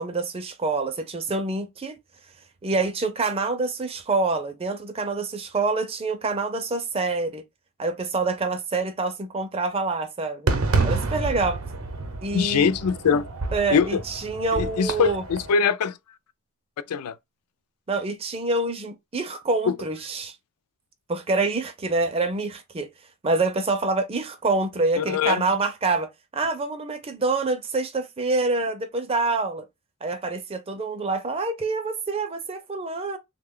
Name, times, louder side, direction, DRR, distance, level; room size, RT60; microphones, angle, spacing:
voice 1, 0.0-1.9 2.6-7.4 7.8-10.5 10.8-11.6 12.2-12.7 13.5-15.2 17.9-20.3 21.1-22.9 23.2-29.6 30.0-33.2, right 3 dB, 25° right, 0.4 m, -26 dB
Fireworks, 10.5-15.5, right 3 dB, 70° right, 0.6 m, -28 dB
voice 2, 12.3-13.3 13.7-14.0 14.5-15.9 16.9-17.2 19.7-19.8 25.0-25.4, left 6 dB, 90° left, 0.4 m, -22 dB
3.2 x 2.2 x 3.6 m
head